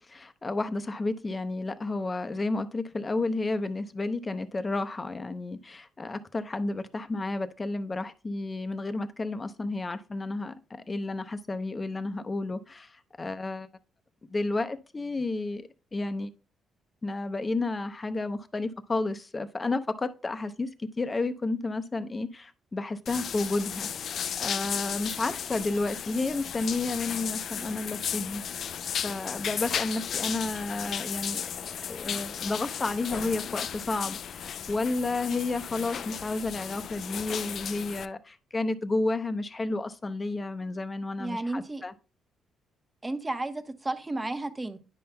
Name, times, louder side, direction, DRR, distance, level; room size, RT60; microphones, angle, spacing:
voice 1, 0.0-13.7 14.3-16.3 17.0-28.4 29.0-31.5 31.9-41.9, left 2 dB, 25° left, 0.6 m, -31 dB
sound 1, 23.1-38.1, left 8 dB, 60° left, 0.3 m, -35 dB
voice 2, 41.2-41.8 43.0-44.8, right 2 dB, 20° right, 0.9 m, -32 dB
9.8 x 5.5 x 2.2 m
cardioid pair, 90°, 0 cm